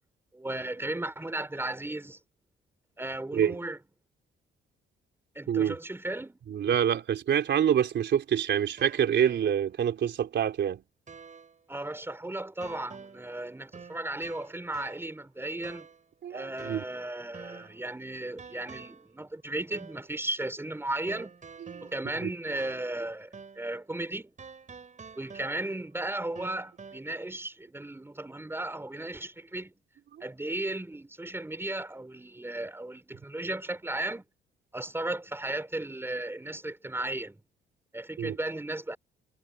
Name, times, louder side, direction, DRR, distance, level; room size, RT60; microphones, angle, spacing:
voice 1, 0.3-2.2 3.0-3.8 5.3-6.4 11.7-15.9 16.3-21.4 21.8-24.3 25.2-29.7 30.2-34.2 34.7-37.4 37.9-39.0, right 1 dB, 10° right, 4.3 m, -35 dB
voice 2, 6.5-10.8 16.2-16.8 21.8-21.9 22.2-22.3 30.2-30.3 38.2-38.4, right 9 dB, 65° right, 4.0 m, -26 dB
sound 1, 7.8-9.9 10.3-10.4 11.1-11.6 12.6-13.4 13.7-15.2 15.6-16.1 16.6-17.9 18.4-19.1 19.7-20.1 21.1-23.1 23.3-23.7 24.4-25.9 26.4-27.0, right 5 dB, 40° right, 6.3 m, -49 dB
cardioid pair, 90°, 20 cm